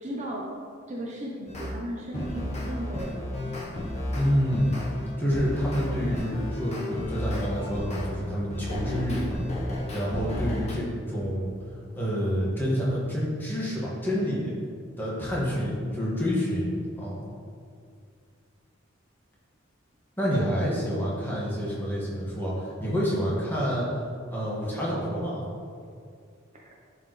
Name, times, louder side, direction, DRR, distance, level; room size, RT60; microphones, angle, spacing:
voice 1, 0.0-0.5 0.9-3.7 20.3-20.7 26.5-26.7, right 1 dB, 35° right, -2 dB, 0.7 m, -36 dB
sound 1, 1.5-1.7 2.1-8.1 8.5-10.7, left 1 dB, 30° left, 1.2 m, -33 dB
voice 2, 4.2-4.7 5.2-9.2 9.9-11.5 11.9-14.5 15.0-17.2 20.2-23.9 24.3-25.4, equal, 10° left, -6 dB, 1.7 m, -28 dB
10.5 x 4.8 x 3.2 m, 2.2 s
head